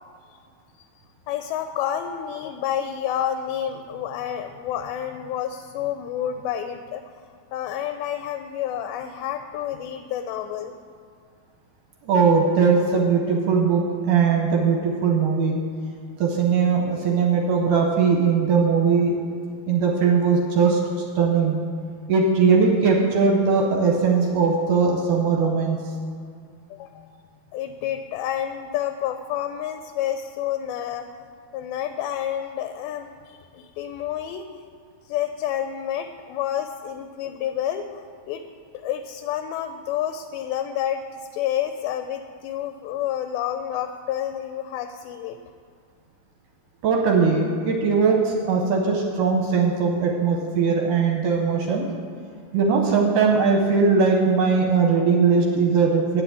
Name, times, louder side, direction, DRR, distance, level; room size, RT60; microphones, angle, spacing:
voice 1, 1.3-7.0 7.5-10.7 26.7-27.1 27.5-31.1 31.5-34.5 35.1-38.0 38.3-38.4 38.7-45.4, left 10 dB, 85° left, 7 dB, 2.4 m, -29 dB
voice 2, 12.0-15.6 16.2-19.1 19.7-20.8 21.2-21.6 22.1-25.8 46.8-51.9 52.5-56.2, right 5 dB, 75° right, 1 dB, 2.1 m, -20 dB
9.8 x 5.8 x 8.4 m, 2.2 s
omnidirectional pair, 4.5 m